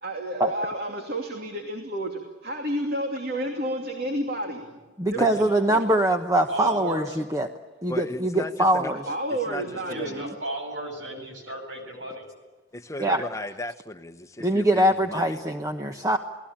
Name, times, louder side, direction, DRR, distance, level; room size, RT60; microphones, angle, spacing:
voice 1, 0.0-4.6 5.1-6.0 9.1-10.3, right 1 dB, 55° right, 3 dB, 2.7 m, -31 dB
voice 2, 5.0-7.5 7.8-9.1 13.0-13.2 14.4-16.2, right 1 dB, 20° right, 5 dB, 1.1 m, -23 dB
voice 3, 6.5-7.2 9.7-12.3, right 1 dB, 75° right, 4 dB, 7.6 m, -35 dB
voice 4, 7.9-8.9 9.5-9.6 9.9-10.2 12.7-14.8 15.1-15.2, left 1 dB, 15° left, 8 dB, 1.1 m, -35 dB
29.0 x 19.0 x 8.8 m, 1.3 s
head